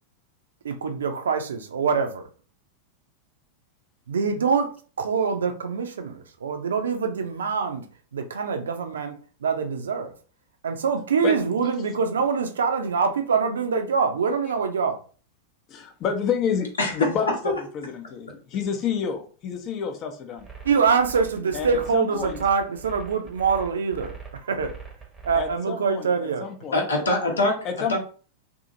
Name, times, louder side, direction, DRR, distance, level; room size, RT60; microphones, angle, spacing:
voice 1, 0.6-2.3 4.1-4.7 5.0-7.8 8.1-9.1 9.4-10.1 10.6-15.0 20.6-24.1 24.4-24.7 25.2-26.5, right 5 dB, 65° right, 7 dB, 0.5 m, -24 dB
voice 2, 15.7-20.5 21.5-22.4 25.3-26.1 26.4-26.9 27.6-28.0, left 7 dB, 35° left, 5 dB, 0.6 m, -29 dB
voice 3, 16.8-17.6 26.7-27.6 27.9-28.0, left 2 dB, 70° left, 1 dB, 0.9 m, -23 dB
sound 1, 20.4-25.6, right 6 dB, 15° right, 0.8 m, -42 dB
2.7 x 2.7 x 2.6 m, 0.39 s
figure-of-eight pair, 90°, 0 cm